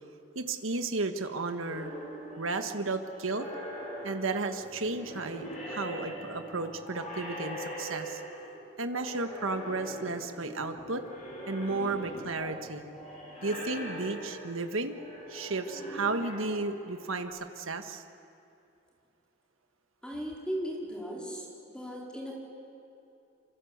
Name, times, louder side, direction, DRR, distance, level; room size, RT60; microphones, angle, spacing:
voice 1, 0.3-1.9 2.4-3.5 4.0-8.2 8.8-11.0 11.5-12.8 13.4-15.0 15.3-18.0, right 3 dB, 75° right, 7 dB, 1.5 m, -33 dB
sound 1, 1.6-8.6 8.9-17.2, equal, 35° left, 7.7 m, -42 dB
voice 2, 20.0-22.3, equal, 5° left, -2 dB, 4.4 m, -37 dB
27.0 x 25.0 x 8.1 m, 2.7 s
head